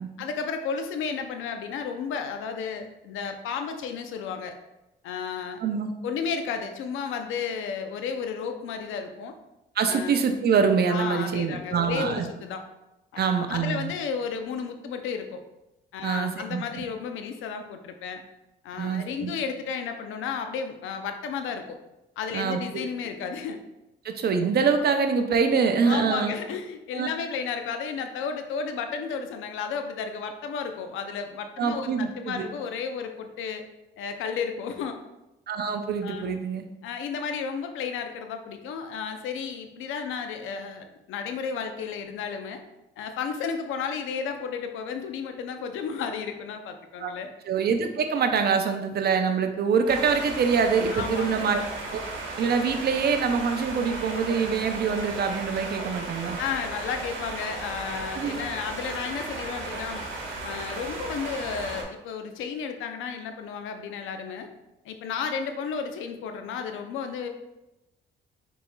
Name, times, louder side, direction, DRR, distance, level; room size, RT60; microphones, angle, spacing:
voice 1, 0.2-4.6 5.0-5.6 6.0-9.3 9.9-10.1 10.9-12.6 13.1-15.4 15.9-18.2 18.6-21.8 22.2-23.6 25.9-33.6 34.0-35.0 36.0-36.3 36.8-42.6 43.0-47.3 50.9-51.5 56.4-60.1 60.4-64.5 64.8-67.3, left 6 dB, 85° left, 6 dB, 0.6 m, -33 dB
voice 2, 5.6-5.9 9.8-12.3 13.2-13.9 16.0-16.6 18.8-19.3 22.3-22.8 24.0-26.3 26.9-27.1 31.6-32.5 35.5-36.7 47.0-47.1 47.5-51.6 51.9-52.0 52.4-56.4 58.2-58.5, right 5 dB, 55° right, 6 dB, 0.6 m, -25 dB
sound 1, 49.9-61.8, right 3 dB, 80° right, 1.2 m, -35 dB
5.5 x 4.1 x 2.3 m, 0.94 s
cardioid pair, 90°, 20 cm